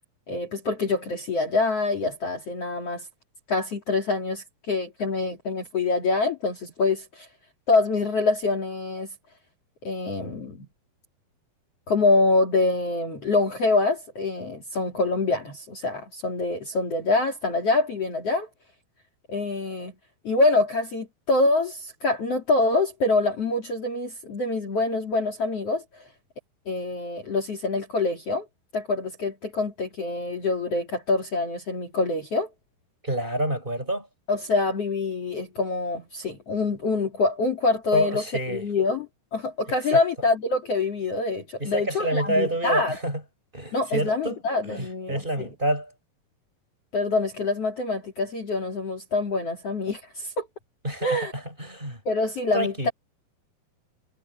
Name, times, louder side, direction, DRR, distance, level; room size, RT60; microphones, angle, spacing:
voice 1, 0.3-3.1 3.5-7.3 7.7-9.1 9.8-10.7 11.9-18.5 19.3-19.9 20.2-26.0 26.7-28.4 28.7-32.5 34.3-43.0 43.7-45.5 46.9-50.5 51.0-51.3 52.0-52.9, left 3 dB, 45° left, 3.3 m, -25 dB
voice 2, 33.0-34.1 37.9-38.6 39.9-40.0 41.6-43.2 43.5-44.4 44.6-45.9 50.8-51.3 51.6-52.0 52.5-52.9, right 1 dB, 10° right, 5.6 m, -27 dB
omnidirectional pair, 4.4 m